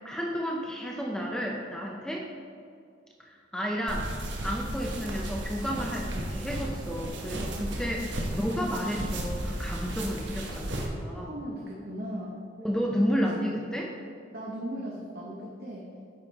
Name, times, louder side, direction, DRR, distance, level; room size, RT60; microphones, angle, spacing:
voice 1, 0.0-2.3 3.2-4.1 4.4-11.3 12.6-13.9, equal, 5° left, -1 dB, 0.6 m, -32 dB
sound 1, 3.9-10.9, right 1 dB, 80° right, 1.2 m, -34 dB
voice 2, 7.3-7.6 11.2-12.4 14.3-15.8, equal, 55° right, -4 dB, 1.0 m, -38 dB
9.7 x 5.1 x 4.1 m, 2.3 s
head